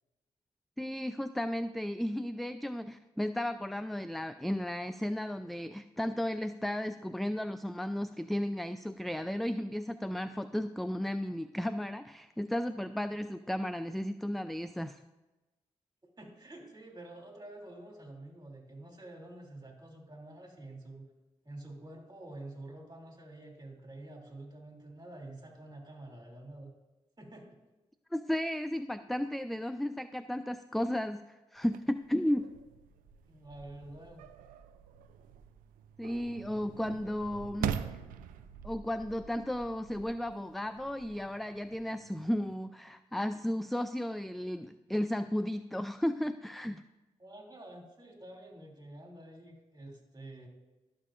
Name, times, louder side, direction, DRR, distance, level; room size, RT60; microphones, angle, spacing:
voice 1, 0.8-15.0 28.1-32.5 36.0-37.7 38.6-46.8, left 1 dB, ahead, 11 dB, 0.3 m, -34 dB
voice 2, 16.2-21.0 21.4-26.7 27.2-27.5 33.3-34.2 47.2-50.5, right 1 dB, 30° right, 0 dB, 2.8 m, -48 dB
sound 1, 31.6-42.5, right 9 dB, 85° right, 0.4 m, -44 dB
12.0 x 6.6 x 2.5 m, 1.1 s
supercardioid pair, 40°, 14 cm